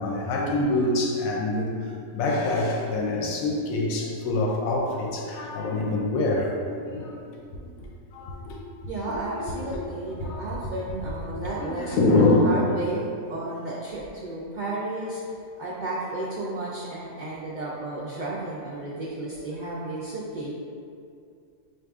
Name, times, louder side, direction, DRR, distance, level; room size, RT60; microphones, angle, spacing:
voice 1, 0.0-1.7 2.1-7.2 7.6-7.7 8.1-8.6 9.1-9.8 10.2-10.4 11.4-12.6, left 2 dB, 85° left, -1 dB, 1.0 m, -25 dB
voice 2, 8.9-15.2 15.6-20.5, right 2 dB, 85° right, -6 dB, 0.4 m, -33 dB
6.0 x 2.5 x 2.3 m, 2.4 s
omnidirectional pair, 1.4 m